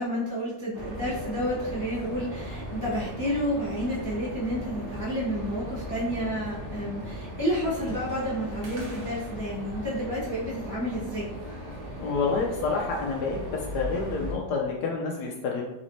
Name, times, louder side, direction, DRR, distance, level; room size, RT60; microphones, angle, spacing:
voice 1, 0.0-11.3, equal, 25° left, -8 dB, 0.4 m, -30 dB
sound 1, 0.7-14.3, equal, 60° right, 1.4 m, -38 dB
voice 2, 12.0-13.5 13.7-15.6, left 4 dB, 70° left, 0 dB, 1.0 m, -28 dB
4.1 x 3.0 x 2.6 m, 0.92 s
omnidirectional pair, 2.1 m